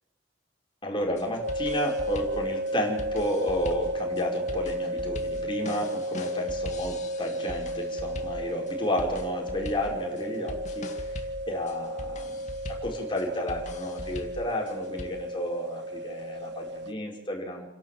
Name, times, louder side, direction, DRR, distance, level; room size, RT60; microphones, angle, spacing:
voice 1, 0.8-17.7, equal, 30° left, -1 dB, 5.3 m, -32 dB
sound 1, 1.0-15.0, left 1 dB, 45° left, 2.1 m, -41 dB
sound 2, 1.4-16.9, equal, 85° right, 1.2 m, -33 dB
29.5 x 11.5 x 7.7 m, 0.91 s
head